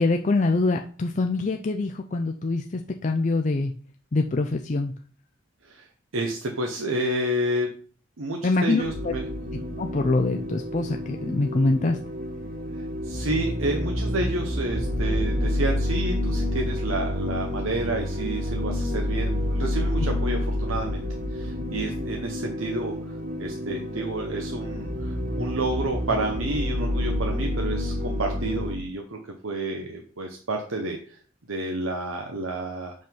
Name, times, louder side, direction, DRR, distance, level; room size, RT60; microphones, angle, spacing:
voice 1, 0.0-3.7 4.1-4.9 8.4-9.1 9.8-12.0, left 3 dB, 35° left, 4 dB, 0.4 m, -24 dB
voice 2, 6.1-7.7 8.2-9.2 12.7-21.0 21.3-22.9 23.4-29.2 29.4-31.2 31.5-32.9, right 2 dB, 85° right, 2 dB, 1.0 m, -30 dB
sound 1, 8.8-28.8, left 1 dB, 45° right, 1.2 m, -29 dB
5.8 x 5.3 x 5.3 m, 0.43 s
head